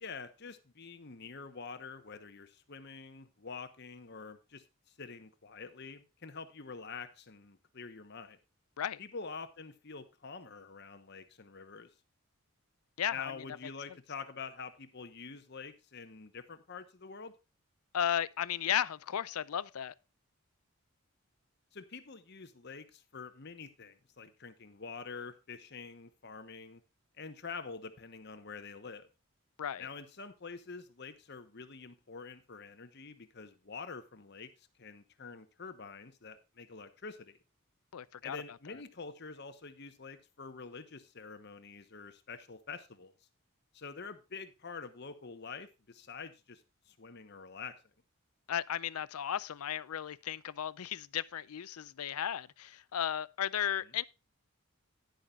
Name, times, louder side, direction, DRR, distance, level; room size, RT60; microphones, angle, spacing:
voice 1, 0.0-8.4 9.0-11.9 13.1-17.3 21.7-26.8 27.2-29.1 29.8-37.4 38.2-43.1 43.7-47.8, left 5 dB, 50° left, 1.0 m, -46 dB
voice 2, 13.0-13.3 17.9-19.9 29.6-29.9 37.9-38.4 48.5-54.0, left 9 dB, 90° left, 0.5 m, -35 dB
11.5 x 10.5 x 2.4 m
head